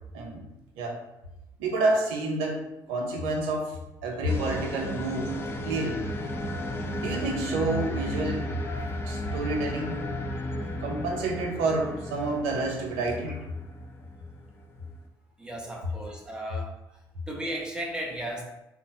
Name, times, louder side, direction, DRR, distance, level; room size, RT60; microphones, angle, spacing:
voice 1, 0.1-0.5 0.8-1.0 1.6-5.3 5.6-6.0 6.9-8.5 9.1-10.0 10.8-13.4, right 2 dB, 90° right, 1 dB, 0.5 m, -29 dB
sound 1, 4.3-15.1, equal, 25° left, 0.5 m, -34 dB
voice 2, 15.4-16.7 17.3-18.4, right 1 dB, 10° right, -1 dB, 0.7 m, -36 dB
2.8 x 2.0 x 2.7 m, 0.93 s
supercardioid pair, 60°, 10 cm